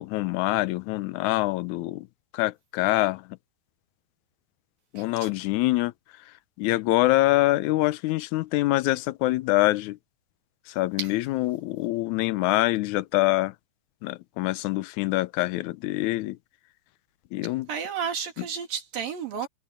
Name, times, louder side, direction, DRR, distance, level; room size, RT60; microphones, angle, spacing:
voice 1, 0.0-2.1 2.3-3.3 4.9-5.9 6.6-10.0 10.7-13.5 14.0-16.4 17.3-17.7 18.4-18.5, left 18 dB, 75° left, 1.9 m, -25 dB
voice 2, 17.7-19.5, right 7 dB, 80° right, 4.7 m, -31 dB
omnidirectional pair, 4.0 m